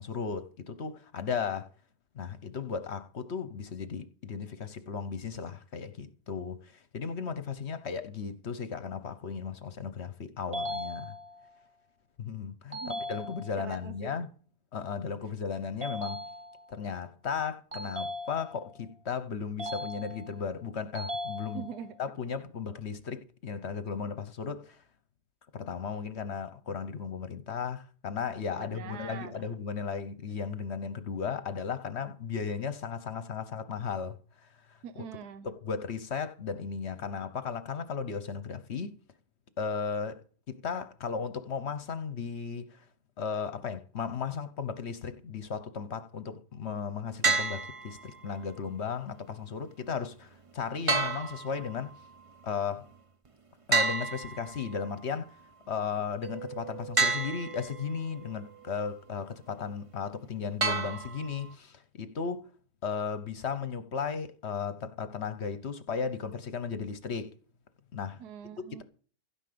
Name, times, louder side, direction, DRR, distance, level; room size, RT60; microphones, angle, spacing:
voice 1, 0.0-1.7 2.1-11.1 12.2-14.3 14.7-16.2 16.7-21.7 22.0-24.8 25.5-34.8 35.4-39.0 39.6-42.8 43.2-51.9 52.4-52.9 53.7-55.4 55.7-62.5 62.8-67.3 67.9-68.2 68.6-68.8, left 6 dB, 50° left, 1.1 m, -35 dB
sound 1, 10.5-11.5 12.7-13.7 15.8-16.8 17.7-18.8 19.6-20.5 20.9-21.9, left 1 dB, 20° right, 2.1 m, -38 dB
voice 2, 12.7-13.1 13.6-14.1 21.4-22.0 28.5-29.4 34.8-35.5 68.2-68.8, right 8 dB, 75° right, 1.5 m, -43 dB
sound 2, 47.2-48.2 50.9-52.0 53.7-54.9 57.0-57.9 60.6-61.5, right 4 dB, 35° right, 0.5 m, -30 dB
Mallet percussion, 56.2-59.7, right 12 dB, 90° right, 2.1 m, -48 dB
11.5 x 9.8 x 6.8 m
omnidirectional pair, 1.7 m